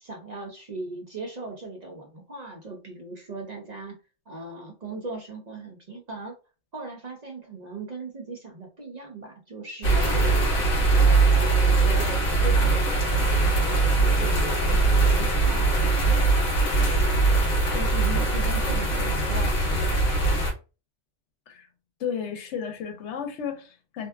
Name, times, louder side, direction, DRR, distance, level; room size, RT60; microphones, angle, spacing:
voice 1, 0.0-4.0 4.3-6.3 6.7-10.4 10.9-16.3 16.8-20.0, right 2 dB, 45° right, 0.6 m, -38 dB
sound 1, 9.8-20.5, right 3 dB, 55° left, 0.9 m, -21 dB
voice 2, 22.0-24.1, left 7 dB, 85° left, 0.9 m, -33 dB
2.6 x 2.3 x 2.2 m
omnidirectional pair, 1.2 m